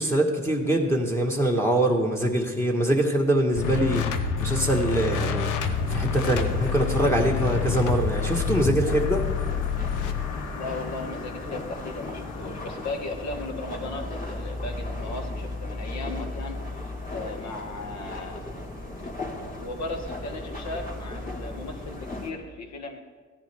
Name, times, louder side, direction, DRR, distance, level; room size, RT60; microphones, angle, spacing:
voice 1, 0.0-4.1 4.4-5.5 5.9-9.2, right 1 dB, 10° left, 1 dB, 1.4 m, -23 dB
sound 1, 3.5-13.5, left 6 dB, 80° left, 0.9 m, -29 dB
sound 2, 5.6-22.3, left 1 dB, 25° left, 2.7 m, -36 dB
voice 2, 10.5-16.6 17.1-18.5 19.6-23.0, left 2 dB, 65° left, 3 dB, 1.8 m, -36 dB
15.0 x 10.0 x 3.4 m, 1.4 s
cardioid pair, 90°, 30 cm